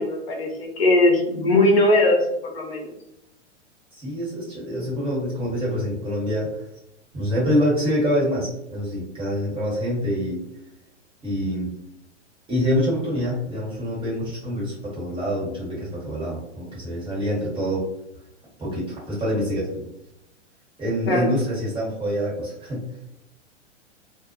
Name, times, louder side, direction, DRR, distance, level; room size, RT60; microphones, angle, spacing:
voice 1, 0.0-2.9 21.1-21.3, left 2 dB, 60° left, 1 dB, 0.6 m, -20 dB
voice 2, 4.0-6.6 7.1-10.4 11.2-11.7 12.5-17.8 18.6-19.9 20.8-22.8, equal, 15° right, -7 dB, 1.1 m, -26 dB
2.0 x 2.0 x 3.0 m, 0.83 s
figure-of-eight pair, 105°, 36 cm